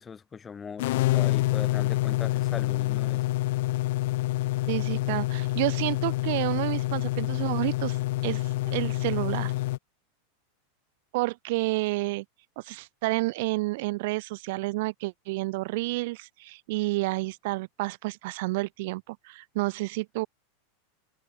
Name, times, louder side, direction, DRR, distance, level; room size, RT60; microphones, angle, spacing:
voice 1, 0.0-3.4, left 6 dB, 20° left, 1.9 m, -40 dB
sound 1, 0.8-9.8, left 18 dB, 70° left, 0.5 m, -27 dB
voice 2, 4.7-9.5 11.1-12.2 12.6-20.3, right 22 dB, 65° right, 0.5 m, -30 dB
supercardioid pair, 130°, 0 cm